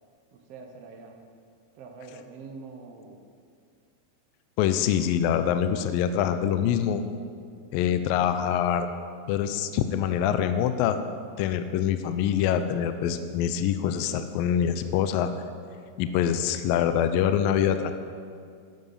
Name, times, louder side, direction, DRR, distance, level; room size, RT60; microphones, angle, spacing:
voice 1, 0.3-1.2 1.7-3.2, right 4 dB, 90° right, 3 dB, 1.3 m, -44 dB
voice 2, 4.6-7.0 7.7-8.9 9.3-11.0 11.4-15.3 16.0-17.9, left 9 dB, 80° left, 9 dB, 2.1 m, -25 dB
12.5 x 11.5 x 5.6 m, 2.2 s
omnidirectional pair, 4.5 m